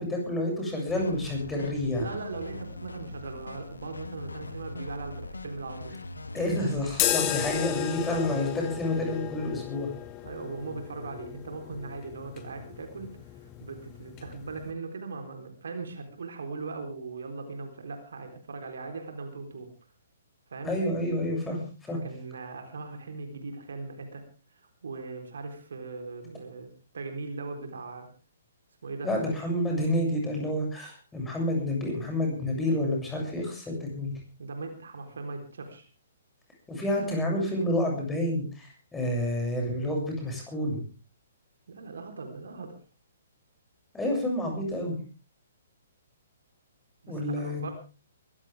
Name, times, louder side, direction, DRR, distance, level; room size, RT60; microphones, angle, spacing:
voice 1, 0.0-2.1 6.3-9.9 20.6-22.0 29.0-34.1 36.7-40.8 43.9-45.0 47.1-47.7, left 1 dB, 10° left, 0 dB, 7.2 m, -29 dB
sound 1, 0.9-8.3, left 2 dB, 75° left, 2.0 m, -41 dB
voice 2, 2.0-6.0 10.2-19.7 20.5-20.7 21.9-24.2 24.5-28.1 28.8-29.1 34.4-35.9 41.7-42.8 47.0-47.7, right 3 dB, 60° right, 5 dB, 3.9 m, -39 dB
sound 2, 6.9-14.7, left 12 dB, 25° left, 2.0 m, -34 dB
23.0 x 15.5 x 3.6 m, 0.35 s
figure-of-eight pair, 125°, 0 cm